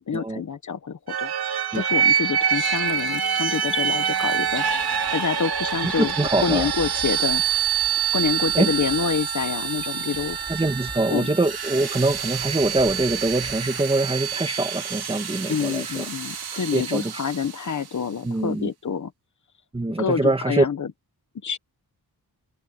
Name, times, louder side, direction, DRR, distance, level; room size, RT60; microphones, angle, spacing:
voice 1, 0.0-4.6 5.1-7.4 8.1-10.4 11.1-11.3 15.5-19.1 20.0-20.9 21.4-21.6, left 6 dB, 50° left, 1.4 m, -27 dB
sound 1, 1.1-17.8, right 8 dB, 85° right, 2.9 m, -26 dB
sound 2, 2.2-16.5, left 7 dB, 70° left, 6.7 m, -50 dB
sound 3, 3.6-14.5, left 2 dB, 15° left, 4.6 m, -46 dB
voice 2, 5.8-6.7 8.5-8.7 10.5-16.0 16.7-17.1 18.2-18.7 19.7-20.7, right 2 dB, 15° right, 1.9 m, -24 dB
open air
wide cardioid pair, 180°, 37 cm